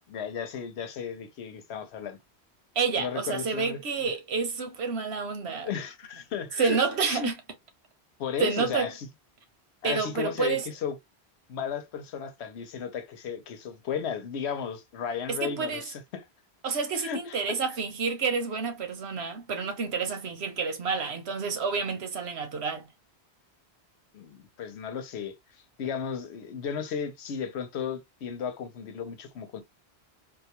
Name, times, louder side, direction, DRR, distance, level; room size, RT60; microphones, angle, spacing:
voice 1, 0.0-2.2 3.0-4.1 5.6-7.3 8.2-9.1 9.8-11.0 11.5-16.2 16.9-17.6 24.1-25.4 25.8-29.6, left 7 dB, 85° left, 1.0 m, -34 dB
voice 2, 2.8-5.7 6.6-7.3 8.4-8.9 9.8-10.6 15.3-15.8 16.6-22.9, right 5 dB, 80° right, 1.1 m, -29 dB
4.0 x 2.3 x 2.8 m
omnidirectional pair, 1.1 m